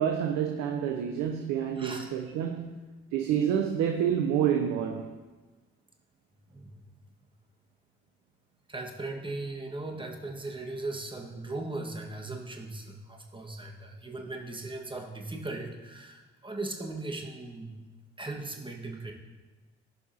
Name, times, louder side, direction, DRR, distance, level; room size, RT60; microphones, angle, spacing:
voice 1, 0.0-2.8 3.1-5.1, right 9 dB, 70° right, 0.6 m, -28 dB
voice 2, 1.8-2.1 6.5-6.8 8.7-17.9 18.2-19.1, right 2 dB, 15° right, 1.5 m, -38 dB
15.0 x 5.5 x 2.8 m
hypercardioid pair, 45°, 29 cm